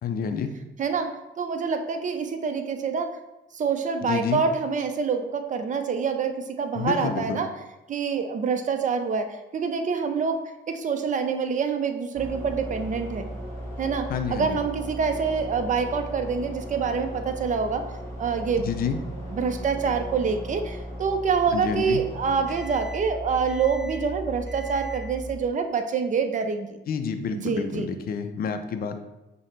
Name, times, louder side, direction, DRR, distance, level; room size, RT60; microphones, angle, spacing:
voice 1, 0.0-0.5 4.0-4.4 6.7-7.4 14.1-14.6 18.6-19.0 21.5-22.0 26.9-29.0, left 6 dB, 50° left, 8 dB, 0.4 m, -29 dB
voice 2, 0.8-3.2 3.5-7.5 7.9-13.3 13.8-17.8 18.2-18.7 19.3-26.8 27.3-27.9, right 5 dB, 40° right, 7 dB, 0.5 m, -26 dB
sound 1, 12.1-25.4, equal, 15° left, 1.4 m, -37 dB
5.5 x 2.1 x 3.2 m, 0.99 s
cardioid pair, 90°, 20 cm